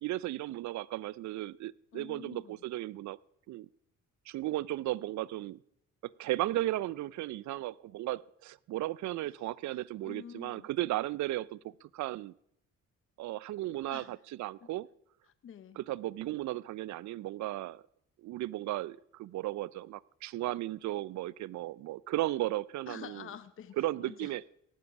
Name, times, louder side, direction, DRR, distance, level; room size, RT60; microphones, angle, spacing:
voice 1, 0.0-3.2 3.5-3.7 4.3-5.6 6.0-12.3 13.2-14.9 15.8-17.8 18.2-23.2 23.8-24.4, right 16 dB, 70° right, 23 dB, 0.4 m, -35 dB
voice 2, 1.9-2.6 10.0-10.7 13.9-14.2 14.6-14.7 15.2-15.8 22.9-24.5, left 8 dB, 45° left, 13 dB, 0.7 m, -48 dB
18.0 x 7.3 x 5.8 m, 0.75 s
cardioid pair, 90°, 30 cm